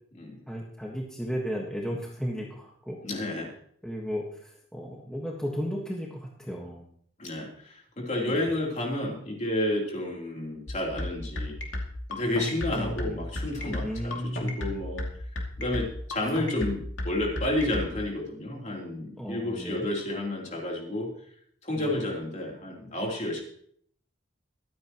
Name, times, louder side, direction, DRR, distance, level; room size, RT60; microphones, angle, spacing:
voice 1, 0.5-3.0 3.8-6.9 8.2-8.5 12.7-13.2 13.8-14.6 19.2-19.9 21.7-21.9, equal, 5° left, -2 dB, 1.5 m, -34 dB
voice 2, 3.0-3.5 7.2-11.5 12.1-15.0 15.6-21.1 21.6-23.4, left 1 dB, 40° left, -1 dB, 3.3 m, -31 dB
sound 1, 10.7-17.9, left 1 dB, 85° left, 2.5 m, -32 dB
23.0 x 9.3 x 3.0 m, 0.63 s
head